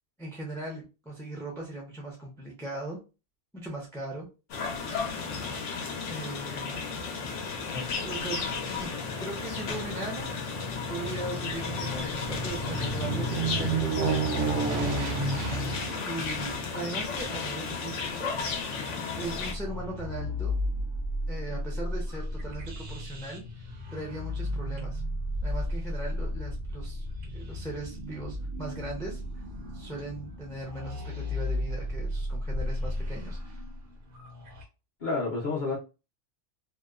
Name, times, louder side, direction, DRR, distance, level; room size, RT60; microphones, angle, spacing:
voice 1, 0.2-3.0 3.5-4.3 6.1-6.8 8.0-10.3 10.9-15.3 16.0-18.3 19.2-20.6 21.3-23.4 23.9-25.0 25.4-27.1 27.3-29.2 29.7-33.6, right 2 dB, 5° left, 0.4 m, -39 dB
sound 1, 4.5-19.5, left 5 dB, 85° left, 0.9 m, -34 dB
Aircraft, 7.2-19.7 20.2-20.3, right 3 dB, 85° right, 1.0 m, -33 dB
sound 2, 19.2-34.6, left 1 dB, 55° right, 0.8 m, -34 dB
voice 2, 35.0-35.8, left 3 dB, 50° left, 0.7 m, -33 dB
2.8 x 2.0 x 2.3 m
omnidirectional pair, 1.2 m